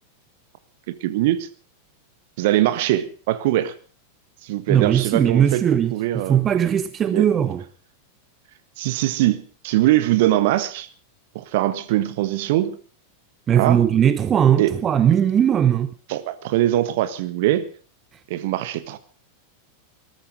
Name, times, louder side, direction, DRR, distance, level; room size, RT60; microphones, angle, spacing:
voice 1, 1.0-1.5 2.4-3.7 4.4-5.6 5.9-6.4 7.1-7.3 8.8-10.9 11.3-12.8 13.5-13.8 14.6-14.7 16.1-17.7 18.3-19.0, right 14 dB, 50° right, 1.5 m, -22 dB
voice 2, 4.7-7.6 13.5-15.9, right 9 dB, 25° right, 1.0 m, -19 dB
20.0 x 13.0 x 5.1 m
figure-of-eight pair, 90°, 0 cm